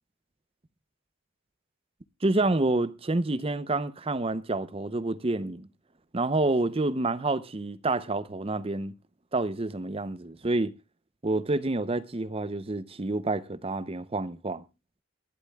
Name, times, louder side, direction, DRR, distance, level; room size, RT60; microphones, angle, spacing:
voice 1, 2.2-5.7 6.1-8.9 9.3-10.7 11.2-14.6, right 2 dB, 25° right, 0.6 m, -28 dB
24.5 x 11.5 x 2.3 m
head